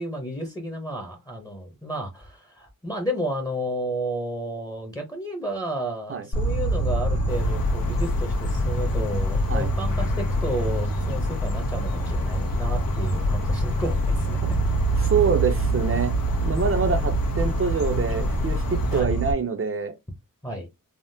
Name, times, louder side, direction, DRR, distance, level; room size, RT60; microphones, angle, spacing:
voice 1, 0.0-14.4 18.9-19.2 20.4-20.7, equal, 10° left, 0.7 m, -32 dB
Insect, 6.3-19.3, right 1 dB, 45° left, 1.3 m, -25 dB
sound 1, 7.3-19.0, left 2 dB, 75° left, 0.7 m, -34 dB
voice 2, 15.0-20.0, right 5 dB, 40° right, 0.5 m, -25 dB
3.5 x 2.0 x 2.6 m
wide cardioid pair, 90°, 35 cm